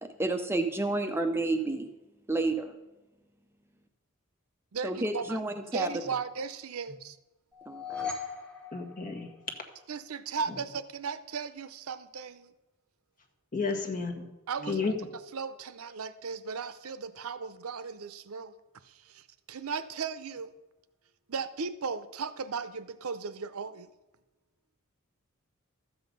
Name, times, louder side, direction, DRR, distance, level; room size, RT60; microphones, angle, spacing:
voice 1, 0.0-1.9 2.3-2.7 4.8-5.9 7.7-8.1, right 2 dB, 10° right, 6 dB, 0.6 m, -30 dB
voice 2, 4.7-5.4 5.7-7.2 9.9-12.5 14.5-14.8 15.3-18.6 18.8-20.5 21.3-23.9, right 5 dB, 75° right, 14 dB, 0.6 m, -36 dB
sound 1, 7.5-9.8, left 6 dB, 5° left, 2.2 m, -39 dB
voice 3, 8.7-9.3 10.5-10.6 13.5-14.2 14.6-15.0, left 4 dB, 40° left, 2 dB, 1.8 m, -32 dB
13.0 x 7.9 x 5.3 m, 1.1 s
head